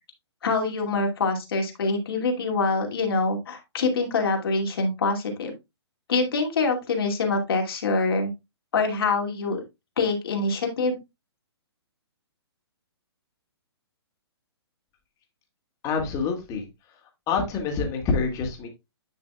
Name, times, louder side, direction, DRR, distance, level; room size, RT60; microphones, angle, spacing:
voice 1, 0.4-5.5 6.1-8.3 8.7-9.6 10.0-11.0, left 3 dB, 60° left, 2 dB, 2.5 m, -25 dB
voice 2, 15.8-16.7 17.3-18.7, left 5 dB, 25° left, 2 dB, 2.2 m, -26 dB
10.0 x 5.8 x 2.3 m, 0.22 s
figure-of-eight pair, 125°, 14 cm